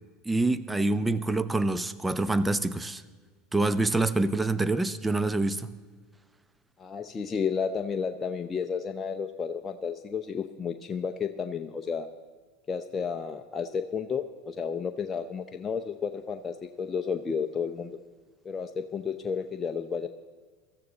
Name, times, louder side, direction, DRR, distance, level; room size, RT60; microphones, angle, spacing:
voice 1, 0.2-3.0 3.5-5.7, right 2 dB, 10° right, 13 dB, 0.8 m, -26 dB
voice 2, 6.8-12.1 12.7-17.9 18.4-20.1, left 6 dB, 25° left, 6 dB, 0.7 m, -32 dB
16.5 x 13.5 x 4.0 m, 1.5 s
hypercardioid pair, 90°, 0 cm